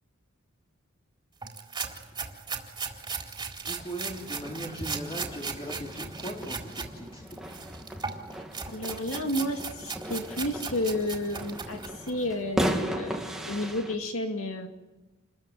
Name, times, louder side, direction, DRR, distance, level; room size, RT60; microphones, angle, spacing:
sound 1, 1.4-6.9 7.3-12.2, right 5 dB, 20° right, 3.9 m, -37 dB
voice 1, 3.6-7.2, equal, 25° left, 0 dB, 4.0 m, -39 dB
sound 2, 4.2-14.0, equal, ahead, 2.4 m, -36 dB
voice 2, 8.7-14.7, left 1 dB, 65° left, 4 dB, 2.5 m, -31 dB
29.5 x 22.5 x 9.2 m, 1.1 s
head